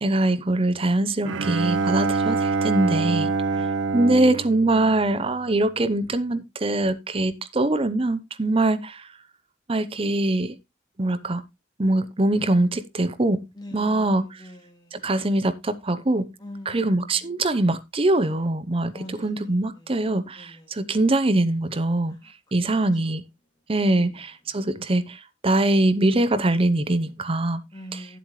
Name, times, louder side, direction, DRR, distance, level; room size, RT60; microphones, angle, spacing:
voice 1, 0.0-3.3 3.6-3.7 3.9-9.1 9.7-10.5 11.0-11.4 11.8-13.4 13.7-14.4 14.9-16.3 16.7-22.1 22.5-23.2 23.7-27.6 27.9-28.0, right 2 dB, 30° right, 0.7 m, -23 dB
Bowed string instrument, 1.2-5.6, right 4 dB, 85° right, 0.6 m, -26 dB
voice 2, 3.5-3.9 13.5-15.1 16.4-17.3 18.9-20.0 20.3-20.9 22.1-22.6 23.0-23.1 23.9-24.1 24.5-24.6 27.7-28.2, equal, 20° left, 2.3 m, -44 dB
11.0 x 7.7 x 3.1 m
head